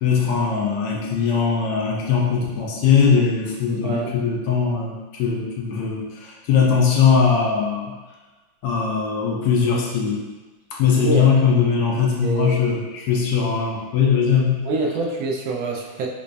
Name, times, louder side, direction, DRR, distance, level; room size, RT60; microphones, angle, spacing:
voice 1, 0.0-7.9 8.6-10.2 10.8-14.6, left 6 dB, 70° left, -2 dB, 1.1 m, -20 dB
voice 2, 3.8-4.1 11.0-11.3 11.6-11.8 12.2-12.8 14.6-16.1, right 2 dB, 85° right, 0 dB, 1.3 m, -26 dB
5.1 x 2.2 x 2.5 m, 1.2 s
omnidirectional pair, 2.1 m